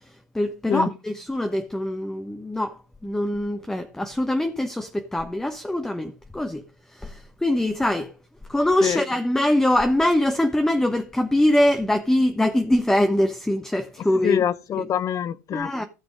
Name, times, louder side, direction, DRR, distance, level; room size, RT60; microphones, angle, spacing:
voice 1, 0.3-6.6 7.0-8.1 8.5-14.4 15.5-15.8, left 1 dB, 5° left, 1.2 m, -23 dB
voice 2, 14.2-15.8, left 9 dB, 40° left, 0.9 m, -25 dB
15.5 x 6.1 x 5.0 m
hypercardioid pair, 85°, 9 cm